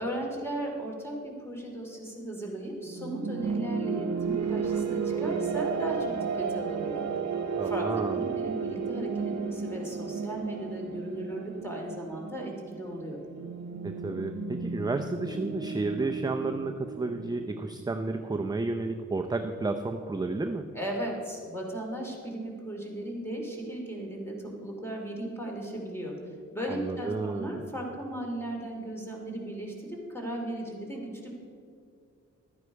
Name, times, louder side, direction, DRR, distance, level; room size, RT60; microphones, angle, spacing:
voice 1, 0.0-7.1 7.6-13.2 20.7-31.3, right 1 dB, 10° left, -1 dB, 2.6 m, -36 dB
sound 1, 2.9-17.5, right 6 dB, 65° right, 0.8 m, -33 dB
voice 2, 7.6-8.2 13.8-20.7 26.7-27.6, right 3 dB, 15° right, 5 dB, 0.5 m, -32 dB
12.0 x 9.6 x 4.7 m, 2.3 s
wide cardioid pair, 110°, 30 cm